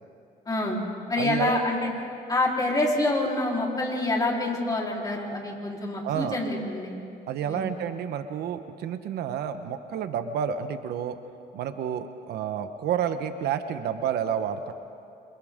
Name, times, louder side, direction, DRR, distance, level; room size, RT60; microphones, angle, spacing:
voice 1, 0.5-0.8 1.1-1.9 2.3-6.9 7.4-7.7, left 2 dB, 20° left, -2 dB, 4.0 m, -26 dB
voice 2, 1.2-1.5 6.0-6.4 7.3-11.2 11.5-14.7, right 8 dB, 70° right, 9 dB, 1.1 m, -30 dB
27.5 x 27.0 x 3.7 m, 2.5 s
cardioid pair, 110°, 17 cm